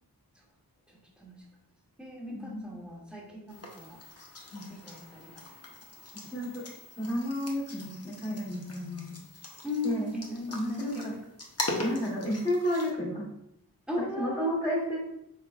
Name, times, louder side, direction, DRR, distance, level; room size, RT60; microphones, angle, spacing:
voice 1, 0.9-1.4 2.0-4.0 4.7-5.4 9.6-11.2 13.9-14.6, left 2 dB, ahead, -3 dB, 1.2 m, -37 dB
voice 2, 2.3-2.6 4.5-4.6 6.3-6.6 7.0-9.1 9.8-10.1 10.5-11.1 11.8-13.3 14.0-15.0, equal, 15° left, -7 dB, 1.4 m, -31 dB
sound 1, 3.5-12.9, left 1 dB, 40° left, 0.9 m, -41 dB
4.7 x 3.8 x 2.4 m, 0.78 s
wide cardioid pair, 65°, 40 cm